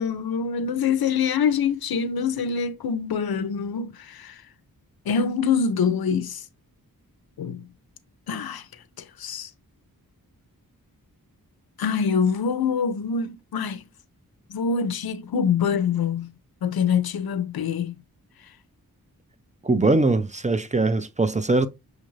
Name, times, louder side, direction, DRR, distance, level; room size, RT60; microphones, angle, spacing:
voice 1, 0.0-4.4 5.1-6.4 7.4-7.6 8.3-8.7 9.0-9.5 11.8-13.8 14.5-16.3 16.6-18.0, left 6 dB, 80° left, 0.6 m, -25 dB
voice 2, 19.6-21.7, right 3 dB, 20° right, 0.4 m, -21 dB
6.3 x 2.5 x 3.1 m
wide cardioid pair, 85°, 36 cm